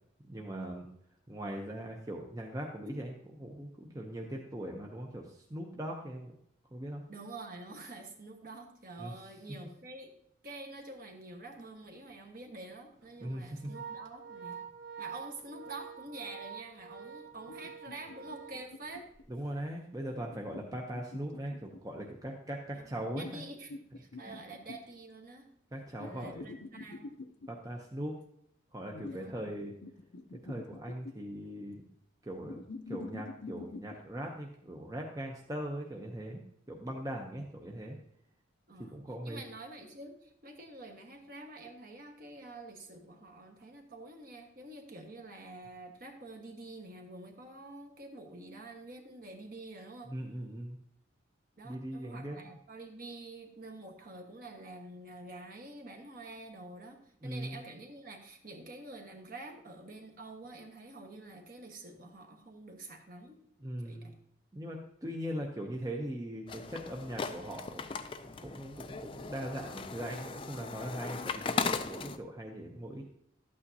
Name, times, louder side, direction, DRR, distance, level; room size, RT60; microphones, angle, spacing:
voice 1, 0.3-0.9 1.3-6.3 6.7-7.0 9.0-9.1 13.2-13.7 19.3-23.4 24.2-24.4 25.7-26.6 27.5-28.2 28.7-29.7 30.4-31.9 32.2-32.6 32.9-36.4 36.7-38.0 38.9-39.4 50.1-50.8 51.6-52.4 57.2-57.6 63.6-64.1 64.5-68.0 68.4-73.0, right 1 dB, 20° right, 0 dB, 0.7 m, -40 dB
voice 2, 7.1-14.6 15.0-19.0 22.7-23.7 24.0-25.5 26.0-27.1 29.0-29.4 38.7-39.0 39.2-50.1 51.6-63.4 63.8-64.1, right 2 dB, 45° right, 3 dB, 1.3 m, -47 dB
Organ, 11.5-11.7 12.1-12.2 13.0-19.3, right 7 dB, 80° right, 1.1 m, -47 dB
sound 1, 17.4-19.2 20.3-22.0 23.0-25.0 26.0-27.5 28.9-29.5 29.8-31.4 32.4-34.0, left 3 dB, 70° left, 0.6 m, -46 dB
sound 2, 66.5-72.2, left 4 dB, 25° left, 0.3 m, -38 dB
12.0 x 8.6 x 2.7 m, 0.73 s
head